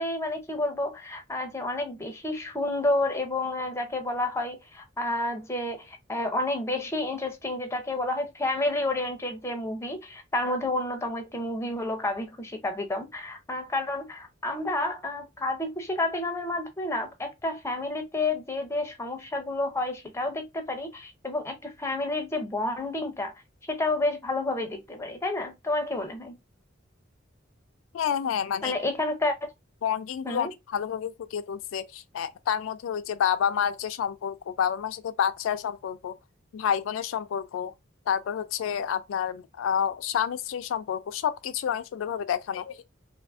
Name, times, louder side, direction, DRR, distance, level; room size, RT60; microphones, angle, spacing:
voice 1, 0.0-23.3 23.7-26.4 28.6-29.5 30.2-30.5, left 2 dB, 15° left, 0.5 m, -30 dB
voice 2, 27.9-28.8 29.8-36.2 36.5-37.7 38.1-42.8, left 8 dB, 80° left, 0.3 m, -29 dB
2.7 x 2.4 x 2.3 m
head